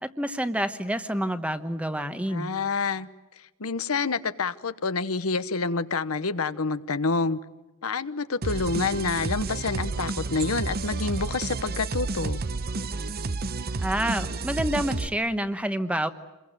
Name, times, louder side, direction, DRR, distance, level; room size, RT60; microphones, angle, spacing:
voice 1, 0.0-2.5 13.8-16.1, right 1 dB, 5° right, 10 dB, 1.1 m, -28 dB
voice 2, 2.3-3.1 3.6-7.4 7.8-12.4, left 4 dB, 85° left, 12 dB, 1.1 m, -28 dB
sound 1, 8.4-15.1, right 3 dB, 45° right, 0.8 m, -31 dB
28.0 x 22.0 x 9.1 m, 1.1 s
head